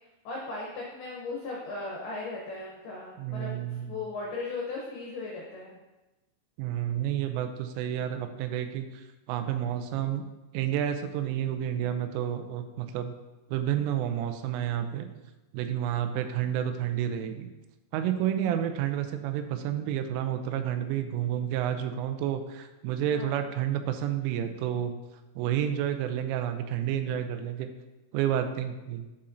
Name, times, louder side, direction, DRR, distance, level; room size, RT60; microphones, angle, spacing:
voice 1, 0.2-5.8 18.9-19.1 21.3-21.4 23.1-23.5, left 3 dB, 85° left, -3 dB, 2.2 m, -37 dB
voice 2, 3.2-4.0 6.6-10.2 10.5-13.1 13.5-15.1 15.5-17.5 17.9-25.0 25.4-27.7 28.1-29.1, right 10 dB, 90° right, 8 dB, 3.1 m, -30 dB
11.5 x 4.2 x 2.6 m, 1.1 s
omnidirectional pair, 5.6 m